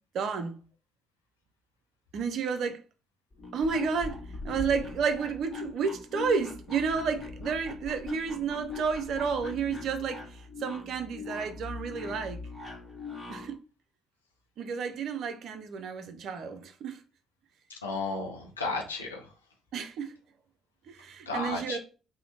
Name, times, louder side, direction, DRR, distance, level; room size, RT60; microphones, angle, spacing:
voice 1, 0.1-0.6 2.1-2.8 3.5-12.4 13.3-13.6 14.6-17.0 19.7-20.1 20.9-21.8, right 6 dB, 60° right, 0.5 m, -31 dB
sound 1, 3.3-13.6, left 3 dB, 25° left, 1.0 m, -41 dB
voice 2, 17.7-19.2 21.3-21.8, left 3 dB, 85° left, 0.5 m, -33 dB
2.7 x 2.1 x 4.1 m
figure-of-eight pair, 45°, 0 cm